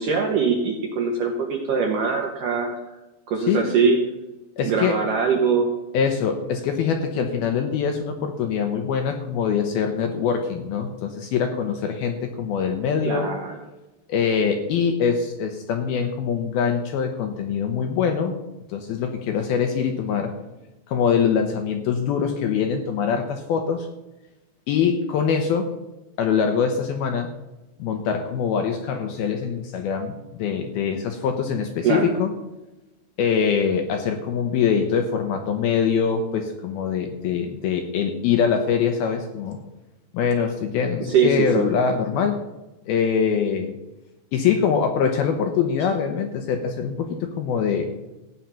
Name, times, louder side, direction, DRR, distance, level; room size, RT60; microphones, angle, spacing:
voice 1, 0.0-2.8 3.3-4.0 4.6-5.7 13.0-13.6 31.8-32.1 41.1-41.6, right 5 dB, 70° right, 1 dB, 2.0 m, -22 dB
voice 2, 4.6-5.0 5.9-13.3 14.1-18.4 18.7-20.3 20.9-23.9 24.7-25.7 26.2-27.3 27.8-32.3 33.2-39.6 40.1-42.4 42.9-43.8 44.3-47.9, left 6 dB, 75° left, 5 dB, 2.4 m, -23 dB
15.0 x 9.1 x 5.7 m, 1.0 s
omnidirectional pair, 5.3 m